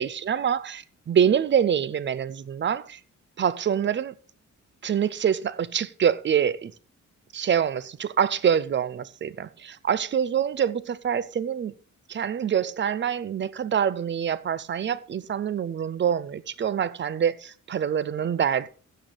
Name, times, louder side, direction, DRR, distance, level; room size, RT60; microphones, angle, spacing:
voice 1, 0.0-3.0 3.4-4.1 4.8-6.7 7.3-11.7 12.1-18.7, right 8 dB, 35° right, 0.5 m, -25 dB
15.0 x 6.9 x 3.9 m
wide cardioid pair, 170°, 31 cm